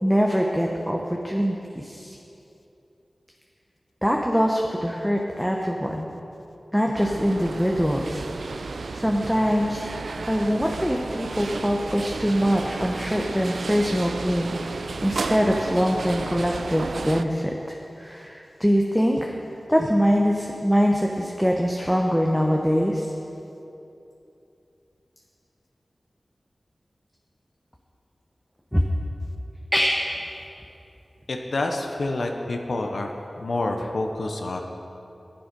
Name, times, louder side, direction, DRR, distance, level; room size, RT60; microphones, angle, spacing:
voice 1, 0.0-2.2 4.0-6.1 6.7-8.3 8.9-9.8 10.3-19.3 19.7-23.1 28.7-28.8 29.7-30.0, equal, ahead, 0 dB, 0.8 m, -23 dB
sound 1, 6.9-17.2, right 3 dB, 85° right, 0.3 m, -33 dB
voice 2, 31.3-33.1 33.4-34.6, left 2 dB, 80° left, 3 dB, 0.7 m, -28 dB
10.5 x 7.7 x 5.3 m, 2.8 s
wide cardioid pair, 50°, 0 cm